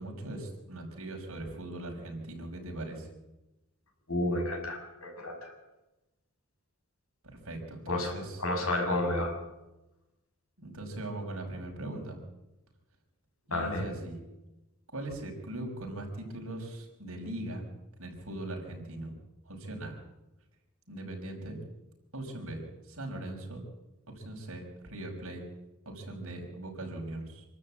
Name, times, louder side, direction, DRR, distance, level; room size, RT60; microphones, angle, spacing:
voice 1, 0.0-3.1 7.2-8.4 10.6-12.2 13.5-14.2 14.9-17.7 18.0-19.1 19.5-20.0 20.9-21.6 22.1-23.6 24.1-25.4 25.9-27.5, right 1 dB, 65° right, 1 dB, 5.7 m, -40 dB
voice 2, 4.1-5.5 7.9-8.1 8.4-9.4 13.5-13.8, left 1 dB, 70° left, 3 dB, 6.4 m, -31 dB
26.5 x 13.0 x 8.7 m, 1.0 s
head